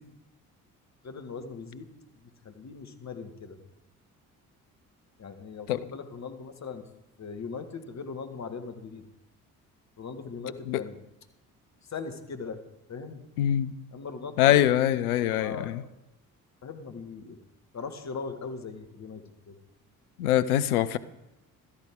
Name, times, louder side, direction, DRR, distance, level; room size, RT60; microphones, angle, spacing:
voice 1, 1.0-1.9 2.4-3.6 5.2-6.9 7.2-9.1 10.0-11.0 11.8-12.6 12.9-13.3 13.9-15.9 16.6-17.4 17.7-19.6, left 5 dB, 35° left, 7 dB, 1.9 m, -39 dB
voice 2, 13.4-13.7 14.4-15.8 20.2-21.0, left 12 dB, 75° left, 15 dB, 0.7 m, -23 dB
15.5 x 13.5 x 3.8 m, 0.97 s
figure-of-eight pair, 45°, 45 cm